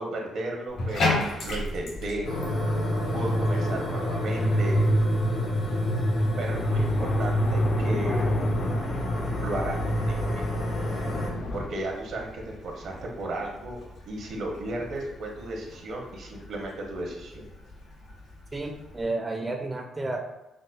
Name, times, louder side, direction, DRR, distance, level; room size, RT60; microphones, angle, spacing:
voice 1, 0.0-2.3 3.1-4.8 6.4-8.4 9.4-10.7 11.5-13.8 14.1-17.4, right 1 dB, 70° right, 0 dB, 0.8 m, -34 dB
Bathtub (filling or washing), 0.7-19.0, left 2 dB, 85° left, 1.2 m, -38 dB
sound 1, 2.2-11.3, equal, 65° left, 0.8 m, -26 dB
sound 2, 6.5-11.7, left 2 dB, 50° left, 0.3 m, -33 dB
voice 2, 18.5-20.2, right 2 dB, 20° right, 2 dB, 0.4 m, -31 dB
4.8 x 2.1 x 2.3 m, 0.98 s
cardioid pair, 90°, 0 cm